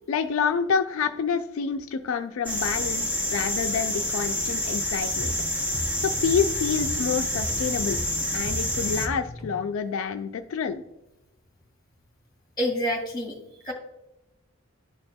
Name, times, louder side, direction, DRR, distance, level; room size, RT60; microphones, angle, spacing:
voice 1, 0.1-5.3 6.0-8.0 8.3-10.8, left 6 dB, 70° left, 6 dB, 0.3 m, -28 dB
sound 1, 2.4-9.1, left 1 dB, 10° right, 0.8 m, -28 dB
sound 2, 5.2-9.7, left 1 dB, 70° right, 1.6 m, -37 dB
voice 2, 12.6-13.7, equal, 20° left, 1 dB, 2.0 m, -28 dB
11.0 x 4.1 x 2.2 m, 0.96 s
head